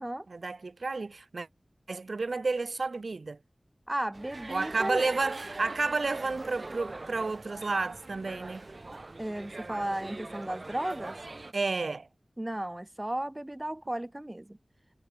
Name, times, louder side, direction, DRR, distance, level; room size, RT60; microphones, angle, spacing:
voice 1, 0.3-1.5 1.9-3.4 4.5-8.6 11.5-12.1, right 3 dB, 75° right, 4.0 m, -31 dB
voice 2, 3.9-5.1 9.2-11.2 12.4-14.6, right 1 dB, 20° right, 2.2 m, -34 dB
sound 1, 4.1-11.5, right 2 dB, 50° right, 4.9 m, -42 dB
wide cardioid pair, 65°, 0 cm